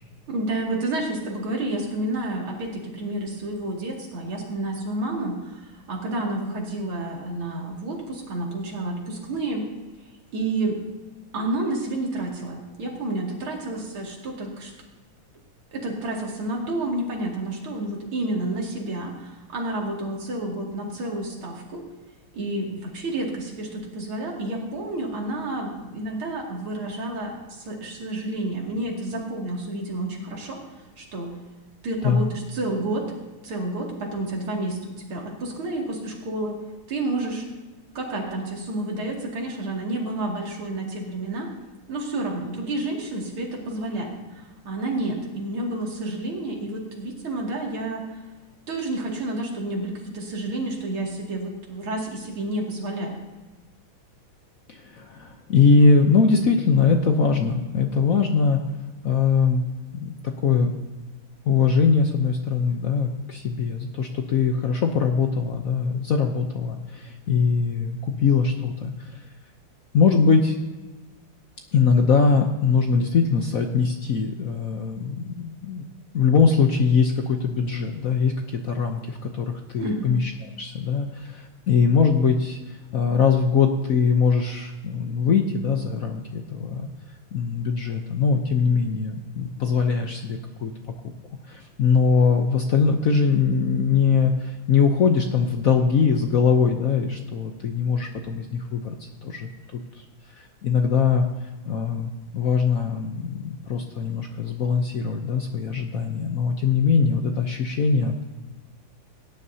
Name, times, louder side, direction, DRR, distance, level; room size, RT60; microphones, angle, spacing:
voice 1, 0.3-9.6 10.3-10.8 11.3-14.7 15.7-21.8 22.3-30.6 31.0-31.4 31.8-33.1 33.4-36.6 36.9-37.5 37.9-41.5 41.9-48.0 48.7-53.2 79.8-80.2, right 2 dB, 85° right, -1 dB, 3.2 m, -30 dB
voice 2, 54.7-58.6 59.0-59.6 60.0-60.7 61.5-69.2 69.9-70.6 71.7-75.9 76.1-80.3 80.6-86.9 87.3-90.7 91.5-100.0 100.3-101.3 101.7-108.3, left 5 dB, 60° left, 4 dB, 0.9 m, -22 dB
17.5 x 10.5 x 2.8 m, 1.2 s
omnidirectional pair, 2.3 m